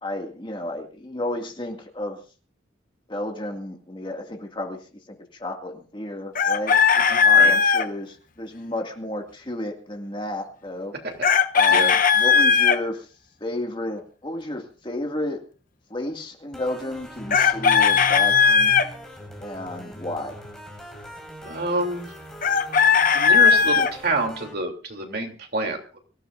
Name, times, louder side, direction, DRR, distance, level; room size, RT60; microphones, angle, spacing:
voice 1, 0.0-2.2 3.1-6.8 7.2-10.9 11.5-13.1 13.4-15.4 15.9-18.7 19.4-20.3, left 1 dB, 25° left, 3 dB, 2.1 m, -32 dB
Chicken rooster, 6.3-7.8 11.2-12.8 17.3-18.9 22.4-23.9, left 6 dB, 45° left, 0.9 m, -17 dB
voice 2, 7.1-7.5 11.0-11.1 11.7-11.9 21.4-22.1 23.1-26.0, right 2 dB, 55° right, 2 dB, 3.1 m, -28 dB
sound 1, 16.5-24.5, equal, 5° left, 5.3 m, -41 dB
24.5 x 14.5 x 2.6 m, 0.36 s
head